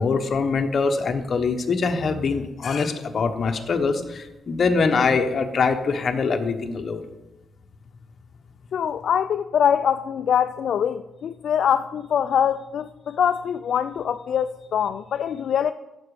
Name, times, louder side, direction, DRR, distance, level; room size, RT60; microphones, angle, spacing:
voice 1, 0.0-7.0, left 4 dB, 45° left, 1.1 m, -23 dB
voice 2, 8.7-15.7, left 8 dB, 60° left, 0.3 m, -23 dB
14.0 x 7.0 x 4.9 m
cardioid pair, 140°, 0 cm